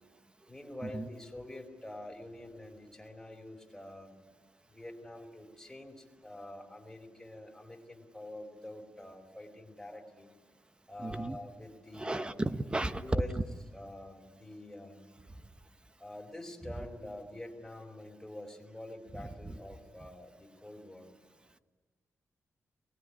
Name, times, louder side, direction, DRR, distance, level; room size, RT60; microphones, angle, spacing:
voice 1, 0.5-4.1 4.7-10.3 10.9-12.3 12.9-13.3 13.7-15.0 16.0-21.1, left 1 dB, 5° left, 1 dB, 4.2 m, -46 dB
voice 2, 11.0-11.4 11.9-13.0 19.2-19.5, right 2 dB, 20° right, 10 dB, 1.1 m, -35 dB
23.5 x 19.5 x 9.9 m, 1.4 s
cardioid pair, 95°, 5 cm